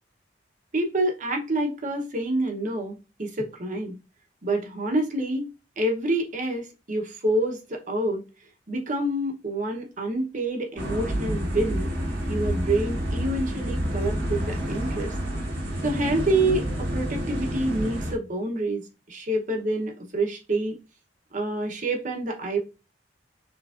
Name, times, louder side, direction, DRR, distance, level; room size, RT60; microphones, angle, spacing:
voice 1, 0.7-3.9 4.4-8.2 8.7-11.9 12.3-15.1 15.8-20.7 21.3-22.6, right 1 dB, 45° right, 1.0 m, -27 dB
sound 1, 10.8-18.1, equal, 90° right, 1.5 m, -29 dB
5.8 x 3.1 x 2.5 m
head